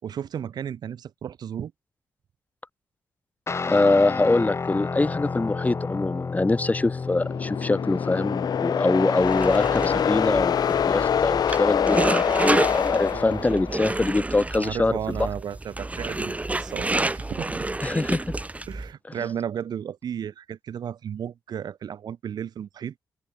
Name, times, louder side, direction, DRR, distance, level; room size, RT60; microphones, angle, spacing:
voice 1, 0.0-1.7 13.1-13.4 14.5-17.6 18.7-22.9, right 9 dB, 70° right, 4.7 m, -34 dB
Guitar, 3.5-11.6, left 4 dB, 40° left, 1.1 m, -32 dB
voice 2, 3.7-10.5 10.8-15.0 17.8-18.2, left 2 dB, 20° left, 1.2 m, -24 dB
sound 1, 7.0-14.0, left 8 dB, 70° left, 1.5 m, -25 dB
sound 2, 9.2-18.9, right 2 dB, 20° right, 1.6 m, -29 dB
supercardioid pair, 55°, 7 cm